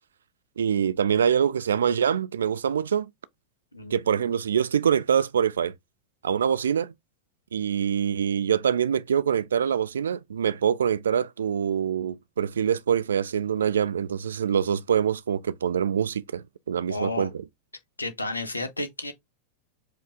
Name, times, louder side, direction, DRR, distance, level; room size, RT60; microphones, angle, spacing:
voice 1, 0.6-3.1 3.9-5.7 6.2-6.9 7.5-17.3, right 8 dB, 65° right, 0.3 m, -25 dB
voice 2, 3.7-4.3 16.9-17.3 18.0-19.1, left 2 dB, 80° left, 0.7 m, -32 dB
4.7 x 2.4 x 3.4 m
figure-of-eight pair, 90°, 0 cm